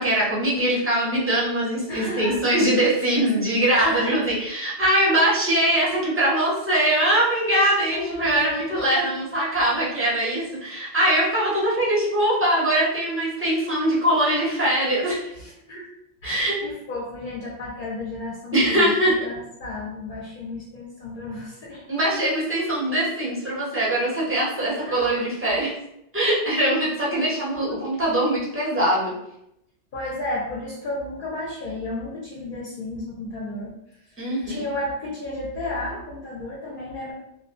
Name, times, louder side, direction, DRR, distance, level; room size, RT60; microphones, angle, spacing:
voice 1, 0.0-15.3 16.2-16.6 18.5-19.2 21.9-25.8 26.1-29.1 34.2-34.7, right 1 dB, 15° right, -7 dB, 0.6 m, -22 dB
voice 2, 1.9-2.4 3.7-4.1 7.9-9.1 15.4-15.9 16.2-21.8 24.8-25.3 27.5-27.8 29.9-33.7 34.5-37.1, left 2 dB, 60° left, -4 dB, 0.6 m, -32 dB
2.4 x 2.1 x 2.5 m, 0.80 s
omnidirectional pair, 1.1 m